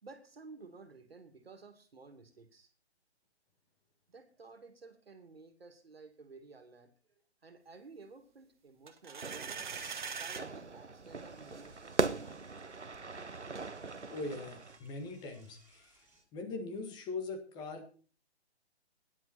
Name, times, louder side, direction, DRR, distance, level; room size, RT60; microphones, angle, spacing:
voice 1, 0.0-2.7 4.1-6.9 7.4-9.6 10.1-12.2, right 4 dB, 60° right, 8 dB, 2.6 m, -54 dB
sound 1, 8.9-10.5, right 6 dB, 45° right, 1.7 m, -41 dB
Fire / Fireworks, 9.2-14.8, right 4 dB, 85° right, 1.2 m, -39 dB
Door / Toilet flush, 11.0-16.2, right 2 dB, 5° right, 5.6 m, -65 dB
voice 2, 14.1-16.1 16.3-17.9, left 3 dB, 15° left, 6 dB, 1.8 m, -41 dB
17.0 x 11.0 x 4.4 m, 0.39 s
figure-of-eight pair, 140°, 34 cm